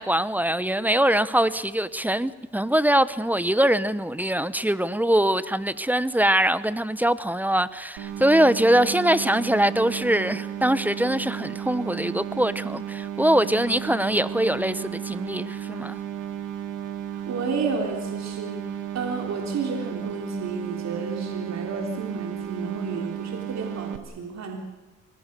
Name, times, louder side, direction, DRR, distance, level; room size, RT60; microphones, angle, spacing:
voice 1, 0.0-16.0, right 1 dB, 5° right, 1.0 m, -23 dB
sound 1, 8.0-24.0, right 10 dB, 90° right, 1.8 m, -34 dB
voice 2, 17.3-24.6, right 4 dB, 60° right, 3.7 m, -31 dB
25.5 x 19.0 x 6.8 m
cardioid pair, 90°, 30 cm